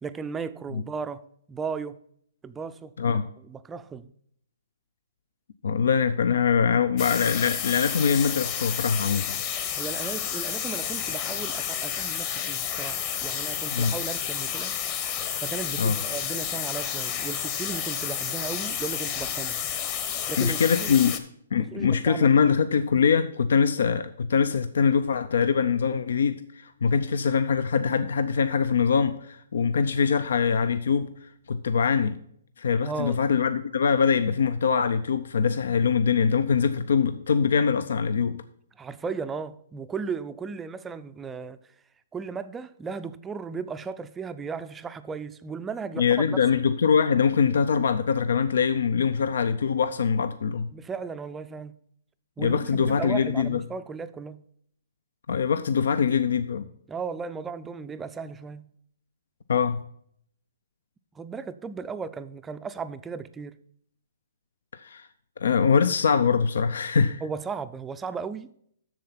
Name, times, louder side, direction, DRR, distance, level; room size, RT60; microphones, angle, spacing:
voice 1, 0.0-2.0 2.4-3.2 3.5-4.1 9.8-14.8 15.4-19.6 20.3-21.1 21.6-22.3 32.8-33.2 38.8-41.6 42.1-46.6 50.7-51.8 52.4-54.4 56.9-58.7 61.1-63.6 67.2-68.5, right 5 dB, 10° right, 0.4 m, -36 dB
voice 2, 5.6-9.4 13.7-13.9 15.8-16.0 20.4-21.2 21.5-31.1 31.5-32.2 32.6-38.4 46.0-50.7 52.4-53.6 55.3-56.7 59.5-59.8 64.8-65.1 65.4-67.2, left 6 dB, 75° left, 0.6 m, -23 dB
sound 1, 7.0-21.2, left 9 dB, 30° left, 1.0 m, -31 dB
7.5 x 6.9 x 5.7 m
hypercardioid pair, 155°, 0 cm